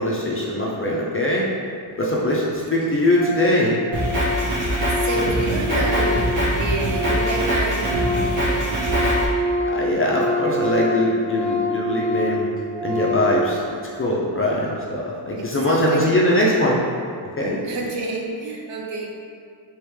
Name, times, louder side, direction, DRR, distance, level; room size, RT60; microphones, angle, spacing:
voice 1, 0.0-1.4 2.0-3.7 9.6-12.5 12.8-13.6 13.9-16.8 17.4-17.6, left 1 dB, 30° left, -4 dB, 0.3 m, -21 dB
Organ, 2.5-2.6 2.8-2.9 3.2-3.6 3.8-7.4 7.7-13.4, left 1 dB, 5° right, 1.1 m, -26 dB
Drum kit, 3.9-9.3, equal, 80° right, 1.2 m, -23 dB
voice 2, 4.3-4.6 5.0-8.8 15.4-16.3 17.6-19.1, right 2 dB, 65° right, 0 dB, 0.6 m, -29 dB
3.4 x 3.0 x 3.1 m, 2.2 s
wide cardioid pair, 130°, 49 cm